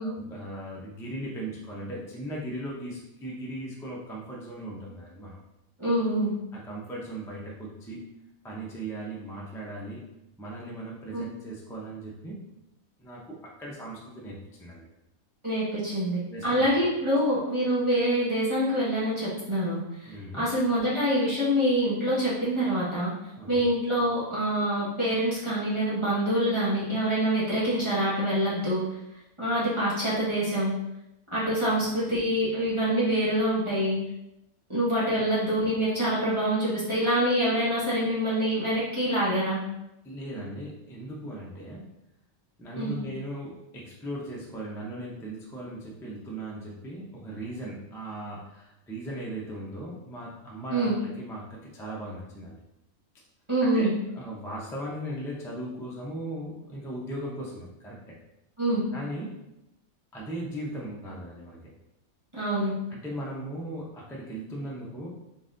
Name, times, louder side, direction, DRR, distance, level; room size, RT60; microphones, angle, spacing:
voice 1, 0.0-5.4 6.5-8.0 8.4-10.0 10.4-12.4 13.0-14.9 16.3-16.7 20.0-20.5 23.4-23.6 31.7-32.2 40.0-41.9 42.6-52.6 53.6-53.9 54.2-58.2 58.9-59.4 60.1-61.7 62.9-65.1, right 1 dB, 5° left, -4 dB, 0.4 m, -38 dB
voice 2, 5.8-6.3 11.1-11.2 15.4-23.1 23.5-28.8 29.4-30.7 31.3-34.0 34.7-39.6 42.8-43.0 50.7-50.9 53.5-53.9 58.6-58.8 62.3-62.7, right 1 dB, 20° right, -11 dB, 1.3 m, -26 dB
3.9 x 3.8 x 2.6 m, 0.88 s
omnidirectional pair, 1.5 m